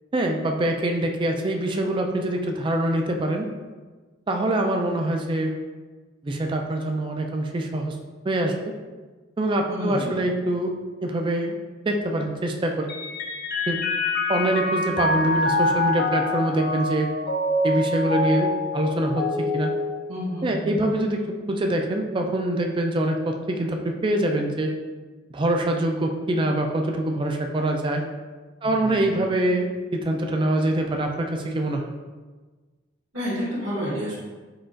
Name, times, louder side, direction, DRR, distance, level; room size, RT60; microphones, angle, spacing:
voice 1, 0.1-3.5 4.3-5.5 6.2-8.0 8.2-8.6 9.4-10.7 11.0-11.5 11.9-12.9 13.7-13.8 14.3-17.1 17.6-19.3 19.5-19.7 20.4-24.7 25.3-28.0 28.6-31.9, right 1 dB, 25° right, 3 dB, 0.3 m, -24 dB
voice 2, 9.7-10.6 20.1-21.1 28.6-29.3 33.1-34.1, equal, 65° right, -7 dB, 1.2 m, -31 dB
Mallet percussion, 12.9-20.6, left 2 dB, 50° left, 0.4 m, -25 dB
5.5 x 2.4 x 2.5 m, 1.3 s
head